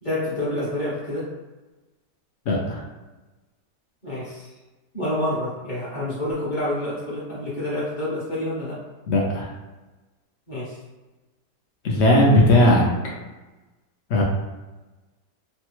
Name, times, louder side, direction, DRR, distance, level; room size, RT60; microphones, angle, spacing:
voice 1, 0.0-1.3 4.0-4.5 4.9-8.8 10.5-10.7, left 1 dB, 40° left, -9 dB, 0.7 m, -28 dB
voice 2, 2.5-2.8 9.1-9.5 11.8-12.9 14.1-14.2, left 1 dB, 85° left, -3 dB, 0.6 m, -17 dB
3.2 x 2.2 x 3.0 m, 1.1 s
omnidirectional pair, 1.8 m